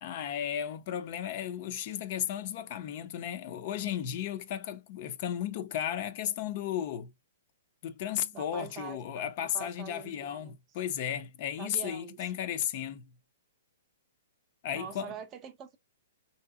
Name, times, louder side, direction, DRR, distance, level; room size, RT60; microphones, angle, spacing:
voice 1, 0.0-7.1 7.8-13.1 14.6-15.1, left 10 dB, 45° left, 0.5 m, -34 dB
voice 2, 8.3-10.6 11.6-12.3 14.7-15.8, right 8 dB, 25° right, 0.5 m, -44 dB
3.2 x 2.8 x 2.4 m
hypercardioid pair, 140°, 0 cm